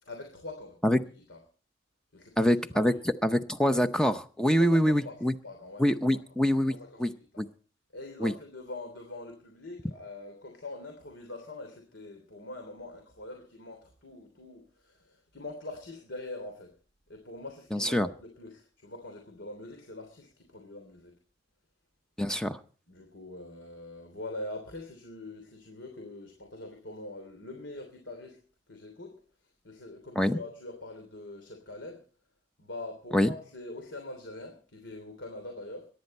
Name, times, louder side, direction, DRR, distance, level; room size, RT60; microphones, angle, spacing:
voice 1, 0.0-0.8 1.1-1.4 2.1-3.0 4.5-6.2 6.7-7.5 7.9-16.7 17.1-21.1 22.9-28.4 28.7-29.2 29.6-32.0 32.6-35.9, left 2 dB, 75° left, 3 dB, 3.2 m, -43 dB
voice 2, 2.4-2.9 3.2-5.3 5.8-6.7 7.0-7.5 8.2-8.3 17.7-18.1 22.2-22.6 30.2-30.4 33.1-33.3, equal, 5° left, 9 dB, 0.6 m, -25 dB
23.0 x 10.5 x 4.3 m, 0.42 s
head